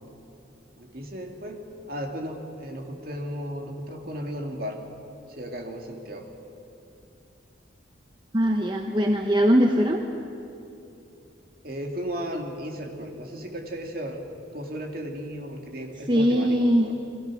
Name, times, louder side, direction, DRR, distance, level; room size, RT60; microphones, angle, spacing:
voice 1, 0.8-4.9 5.4-6.3 11.6-14.2 14.5-16.9, equal, 50° right, 2 dB, 2.7 m, -35 dB
voice 2, 8.3-10.0 16.1-16.9, equal, 25° right, 3 dB, 1.0 m, -21 dB
30.0 x 22.0 x 6.4 m, 2.9 s
head